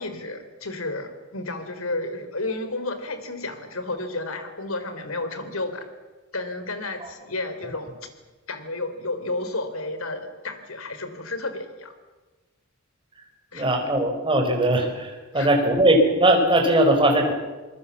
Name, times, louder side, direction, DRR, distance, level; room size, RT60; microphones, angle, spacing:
voice 1, 0.0-5.9 6.3-8.0 8.5-11.9 13.5-13.7 15.3-15.5, left 2 dB, 90° left, 9 dB, 3.6 m, -32 dB
voice 2, 13.5-17.3, right 1 dB, 25° right, 3 dB, 4.5 m, -20 dB
26.5 x 21.0 x 7.3 m, 1.2 s
head